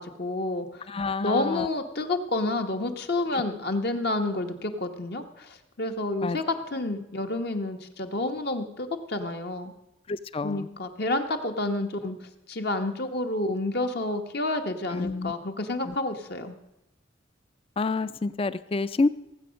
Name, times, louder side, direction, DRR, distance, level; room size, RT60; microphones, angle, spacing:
voice 1, 0.0-0.9 1.2-9.7 10.4-12.2 12.5-16.6, left 2 dB, 55° left, 5 dB, 1.1 m, -29 dB
voice 2, 0.9-1.7 3.3-3.4 6.2-6.4 10.1-10.7 14.9-15.3 15.8-15.9 17.8-19.1, left 3 dB, 30° left, 16 dB, 0.4 m, -28 dB
17.5 x 7.9 x 6.3 m, 0.91 s
head